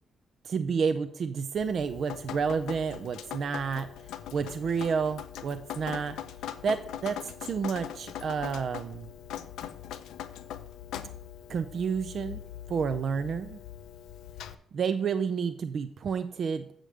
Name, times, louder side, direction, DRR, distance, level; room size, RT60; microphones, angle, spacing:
voice 1, 0.4-6.2 6.6-9.1 11.5-12.4 12.7-13.6 14.7-16.6, right 6 dB, 45° right, 10 dB, 0.4 m, -30 dB
Drip, 1.6-14.6, left 10 dB, 85° left, 0.5 m, -41 dB
7.6 x 5.0 x 6.4 m, 0.66 s
cardioid pair, 150°, 0 cm